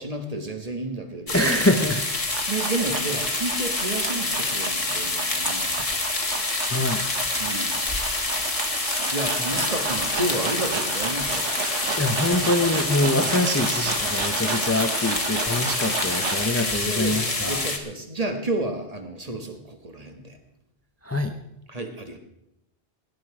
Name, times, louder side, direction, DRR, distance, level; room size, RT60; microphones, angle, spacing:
voice 1, 0.0-1.6 2.5-6.0 7.4-7.8 8.8-11.6 13.0-13.3 16.7-20.4 21.7-22.2, right 2 dB, 35° right, 5 dB, 1.6 m, -31 dB
sound 1, 1.3-17.8, left 2 dB, 30° left, 1.5 m, -27 dB
voice 2, 1.3-2.2 6.7-7.0 12.0-17.6 21.0-21.3, left 1 dB, 15° left, 6 dB, 0.7 m, -24 dB
sound 2, 1.9-16.5, right 5 dB, 90° right, 1.5 m, -33 dB
17.0 x 10.5 x 4.9 m, 0.82 s
omnidirectional pair, 1.2 m